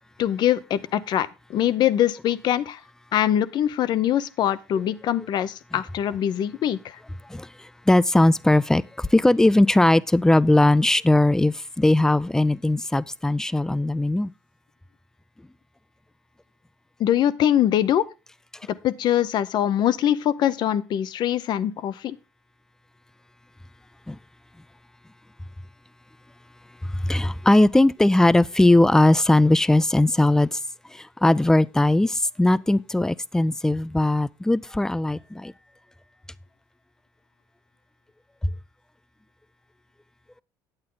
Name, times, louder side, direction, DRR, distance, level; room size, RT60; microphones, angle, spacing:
voice 1, 0.2-2.8 3.1-6.8 17.0-18.0 18.8-22.2, left 11 dB, 60° left, 0.7 m, -23 dB
voice 2, 7.9-14.3 24.1-24.2 27.0-30.6 30.9-35.5, left 1 dB, 5° left, 0.4 m, -19 dB
8.9 x 8.4 x 3.8 m
supercardioid pair, 95°, 9 cm